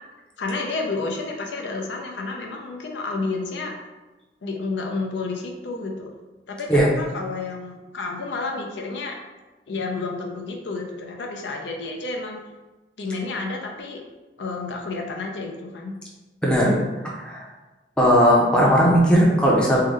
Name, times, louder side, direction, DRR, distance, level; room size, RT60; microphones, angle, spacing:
voice 1, 0.4-3.7 4.4-6.2 6.5-9.2 9.7-12.4 13.0-14.0 14.4-15.9, left 3 dB, 85° left, 1 dB, 0.5 m, -30 dB
voice 2, 16.4-17.4 18.0-19.8, equal, 5° left, -4 dB, 0.5 m, -18 dB
3.7 x 2.1 x 3.2 m, 1.1 s
head